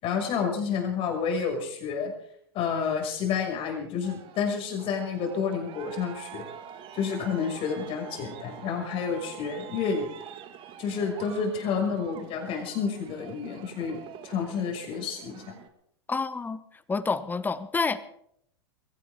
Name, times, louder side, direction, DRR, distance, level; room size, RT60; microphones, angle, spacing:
voice 1, 0.0-2.1 2.5-6.4 6.9-10.1 10.8-14.0 14.2-15.6, left 6 dB, 40° left, 2 dB, 6.3 m, -30 dB
Aircraft, 4.0-15.7, right 9 dB, 40° right, 2.1 m, -45 dB
voice 2, 16.1-16.6 16.9-18.0, left 4 dB, 15° left, 15 dB, 1.1 m, -28 dB
22.0 x 17.0 x 3.8 m, 0.70 s
hypercardioid pair, 100°, 14 cm